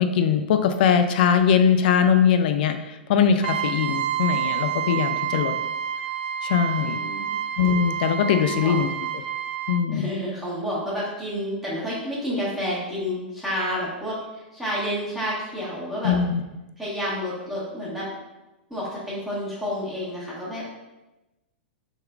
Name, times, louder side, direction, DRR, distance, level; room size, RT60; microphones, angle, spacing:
voice 1, 0.0-5.5 6.4-7.0 7.6-8.9 9.7-10.1 16.0-16.4, left 7 dB, 60° left, 8 dB, 0.3 m, -21 dB
Trumpet, 3.4-9.8, right 9 dB, 65° right, 0.3 m, -28 dB
voice 2, 6.8-7.3 8.3-8.8 9.9-16.1 16.8-18.1 18.7-20.8, equal, 5° right, -9 dB, 1.1 m, -30 dB
3.5 x 3.2 x 2.3 m, 1.0 s
hypercardioid pair, 105°, 6 cm